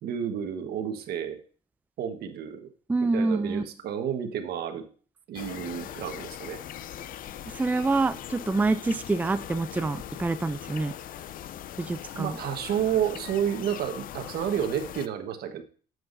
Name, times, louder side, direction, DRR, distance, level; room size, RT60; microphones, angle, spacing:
voice 1, 0.0-1.4 2.0-2.7 3.1-4.8 5.3-6.6 12.2-15.6, right 9 dB, 70° right, 7 dB, 1.4 m, -30 dB
voice 2, 2.9-3.6 7.5-10.9 11.8-12.4, right 3 dB, 10° right, 11 dB, 0.4 m, -26 dB
sound 1, 5.3-15.1, left 11 dB, 55° left, 0.5 m, -40 dB
9.2 x 8.1 x 2.6 m, 0.41 s
cardioid pair, 110°, 17 cm